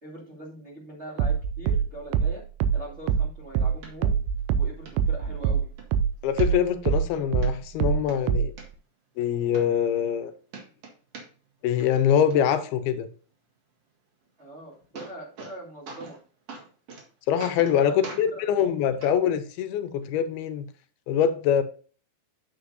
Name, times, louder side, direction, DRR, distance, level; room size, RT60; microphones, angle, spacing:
voice 1, 0.0-2.4 2.7-4.2 4.6-5.7 14.4-16.2 17.7-18.6, right 1 dB, 25° right, 1.9 m, -42 dB
sound 1, 1.2-6.1 6.4-8.6, right 7 dB, 85° right, 2.6 m, -24 dB
sound 2, 3.8-3.9 4.4-4.5 4.9-5.0 5.4-5.9 6.4-7.0 7.4-7.5 7.9-8.7 9.2-9.3 9.5-10.2 10.5-11.5 11.8-12.4 14.4-14.5 14.7-15.6 15.9-16.2 16.5-17.0 17.4-17.8 18.0-18.3 19.0-19.1 20.0-20.1, right 3 dB, 50° right, 2.3 m, -42 dB
voice 2, 6.2-8.5 9.2-10.3 11.6-13.1 17.3-20.7 21.1-21.6, left 9 dB, 80° left, 2.6 m, -24 dB
9.0 x 8.1 x 2.7 m
omnidirectional pair, 4.5 m